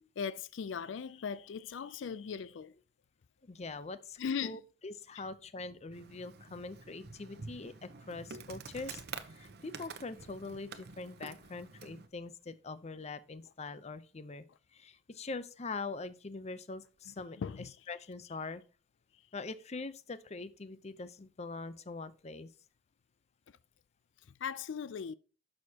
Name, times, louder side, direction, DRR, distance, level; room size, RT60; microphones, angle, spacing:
voice 1, 0.2-2.7 4.2-4.6 5.1-5.2 17.1-17.7 24.4-25.1, left 6 dB, 90° left, 0.4 m, -38 dB
voice 2, 3.4-14.4 14.7-17.4 17.9-18.6 19.3-22.5, left 3 dB, 35° left, 0.6 m, -43 dB
Insect, 5.9-12.1, right 5 dB, 60° right, 0.8 m, -48 dB
11.0 x 6.4 x 2.8 m
head